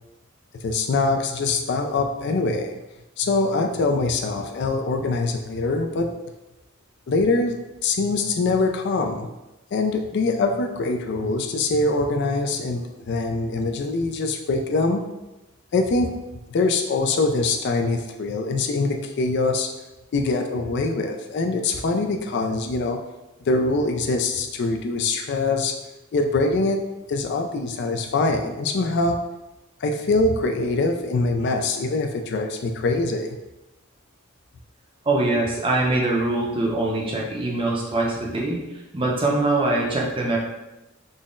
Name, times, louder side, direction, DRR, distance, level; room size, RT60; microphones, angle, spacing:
voice 1, 0.6-2.8 3.2-6.1 7.1-9.3 9.7-15.0 15.7-16.1 16.5-19.7 20.1-23.0 23.5-25.7 26.1-26.8 27.1-29.2 29.8-33.4, left 3 dB, 55° left, 4 dB, 0.3 m, -23 dB
voice 2, 35.0-38.6 38.9-40.4, right 2 dB, 25° right, -2 dB, 0.6 m, -23 dB
3.9 x 2.1 x 3.7 m, 1.0 s
head